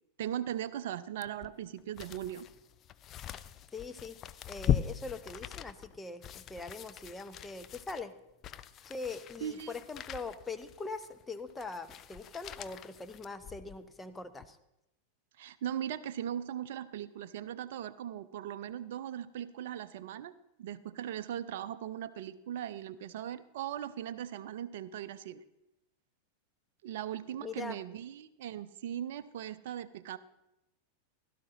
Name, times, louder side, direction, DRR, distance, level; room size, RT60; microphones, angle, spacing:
voice 1, 0.2-2.5 9.4-9.7 15.4-20.3 20.6-25.4 26.8-30.2, right 10 dB, 55° right, 13 dB, 0.5 m, -39 dB
sound 1, 1.2-13.9 14.3-14.5, left 10 dB, 30° left, 0.4 m, -39 dB
voice 2, 3.7-4.2 4.5-8.1 8.8-14.6 27.4-27.8, left 3 dB, 10° left, 10 dB, 0.8 m, -42 dB
16.5 x 12.0 x 3.0 m, 0.88 s
figure-of-eight pair, 90°, 0 cm